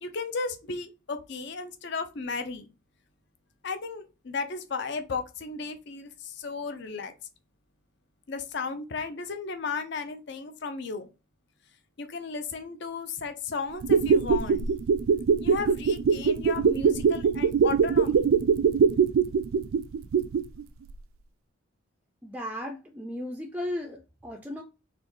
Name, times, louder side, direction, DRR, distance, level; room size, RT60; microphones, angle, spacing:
voice 1, 0.0-2.7 3.6-7.1 8.3-11.1 12.0-14.7 15.4-18.2, left 4 dB, 55° left, 0.5 m, -34 dB
sound 1, 13.7-20.6 20.9-21.0, right 6 dB, 80° right, 0.3 m, -22 dB
voice 2, 22.2-24.6, left 1 dB, 5° right, 0.4 m, -35 dB
4.2 x 3.1 x 3.1 m
head